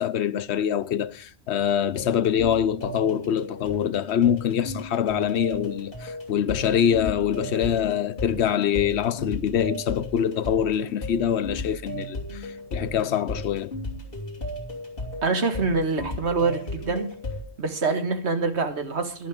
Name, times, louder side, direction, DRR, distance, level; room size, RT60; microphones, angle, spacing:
voice 1, 0.0-13.8, left 9 dB, 80° left, 1.0 m, -24 dB
sound 1, 1.7-17.4, left 1 dB, 55° left, 3.1 m, -35 dB
voice 2, 15.2-17.1 17.6-19.3, right 4 dB, 90° right, 1.9 m, -25 dB
12.0 x 11.5 x 5.1 m
omnidirectional pair, 1.1 m